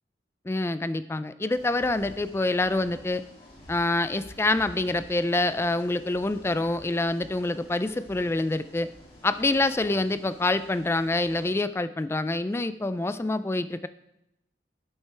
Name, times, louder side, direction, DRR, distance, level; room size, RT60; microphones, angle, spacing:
voice 1, 0.5-3.2 3.7-8.9 9.2-13.9, left 2 dB, 15° left, 13 dB, 0.3 m, -26 dB
sound 1, 1.5-11.5, left 1 dB, 30° left, 2.5 m, -50 dB
11.5 x 8.0 x 3.3 m, 0.84 s
head